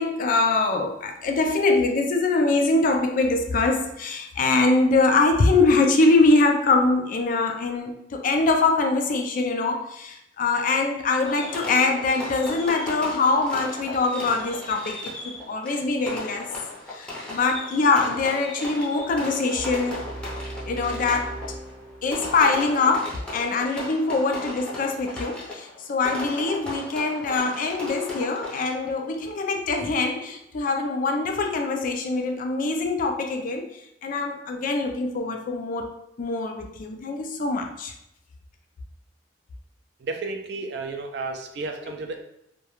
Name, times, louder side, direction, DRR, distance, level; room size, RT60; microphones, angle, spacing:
voice 1, 0.0-16.5 16.9-20.1 20.7-21.4 22.0-35.9 36.2-37.9, left 3 dB, 50° left, 4 dB, 0.3 m, -23 dB
Fireworks, 11.2-29.0, left 2 dB, 5° left, 0.6 m, -36 dB
sound 1, 19.5-22.5, right 2 dB, 45° right, 0.8 m, -38 dB
voice 2, 40.0-42.2, right 3 dB, 65° right, 4 dB, 0.3 m, -32 dB
2.3 x 2.2 x 2.9 m, 0.80 s
head